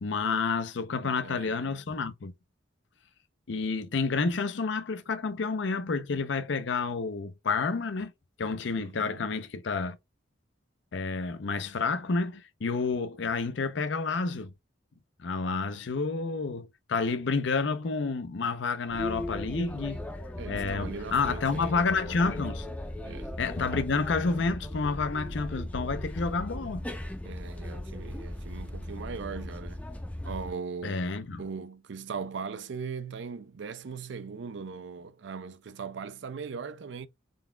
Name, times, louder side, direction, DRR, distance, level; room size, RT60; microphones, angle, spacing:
voice 1, 0.0-2.3 3.5-8.1 8.4-10.0 10.9-14.5 15.2-22.7 23.4-26.9 30.8-31.4, left 4 dB, 65° left, 0.5 m, -30 dB
voice 2, 1.0-1.8 8.8-9.2 20.4-21.9 23.0-23.3 27.2-29.8 30.2-31.0 31.4-37.1, right 5 dB, 65° right, 0.4 m, -39 dB
sound 1, 18.9-30.5, left 1 dB, 5° left, 0.5 m, -37 dB
3.9 x 3.4 x 2.2 m
head